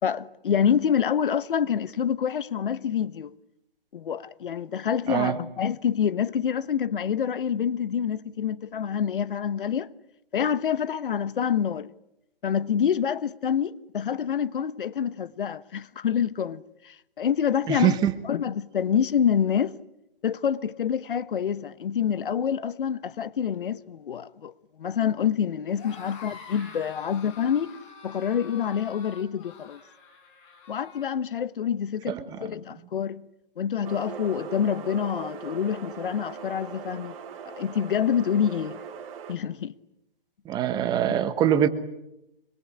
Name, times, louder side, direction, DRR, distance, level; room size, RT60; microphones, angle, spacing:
voice 1, 0.0-3.3 3.9-9.9 10.3-11.9 12.4-18.0 18.2-19.7 20.2-24.5 24.8-27.7 28.0-29.8 30.7-33.2 33.6-37.1 37.5-38.8 39.3-39.7, left 8 dB, 65° left, 1.2 m, -27 dB
voice 2, 5.1-5.4 17.7-18.1 32.1-32.2 40.4-41.7, right 10 dB, 15° right, 1.2 m, -23 dB
sound 1, 25.7-31.1, left 6 dB, 35° left, 8.0 m, -46 dB
sound 2, 33.8-39.4, right 7 dB, 35° right, 3.9 m, -40 dB
25.5 x 23.5 x 9.9 m
hypercardioid pair, 150°, 29 cm